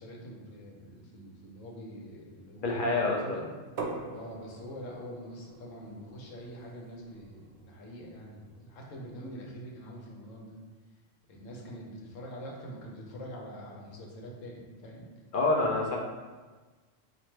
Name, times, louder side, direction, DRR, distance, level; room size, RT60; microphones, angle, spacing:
voice 1, 0.0-3.5 4.1-10.6 11.3-15.1, equal, 85° left, -1 dB, 1.1 m, -44 dB
voice 2, 2.6-3.4 15.3-16.0, left 2 dB, 60° left, -1 dB, 0.5 m, -27 dB
sound 1, 3.8-9.4, right 3 dB, 65° right, 0.8 m, -44 dB
4.1 x 2.5 x 3.2 m, 1.3 s
omnidirectional pair, 1.3 m